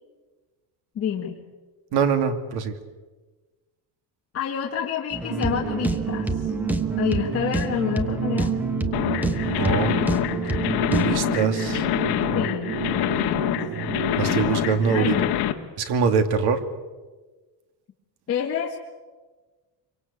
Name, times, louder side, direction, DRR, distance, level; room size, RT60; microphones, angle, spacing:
voice 1, 1.0-1.4 4.3-6.5 7.0-8.5 12.3-13.5 14.9-15.4 18.3-18.8, left 8 dB, 35° left, -1 dB, 2.0 m, -28 dB
voice 2, 1.9-2.7 9.4-10.0 10.9-11.9 14.1-15.1 15.8-16.6, right 6 dB, 65° right, 8 dB, 2.5 m, -23 dB
sound 1, 5.1-11.2, right 1 dB, 5° right, 1.0 m, -28 dB
sound 2, 5.3-15.3, right 10 dB, 45° right, 1.1 m, -31 dB
sound 3, 8.9-15.5, left 13 dB, 65° left, 1.8 m, -26 dB
25.5 x 24.0 x 8.4 m, 1.3 s
cardioid pair, 180°, 42 cm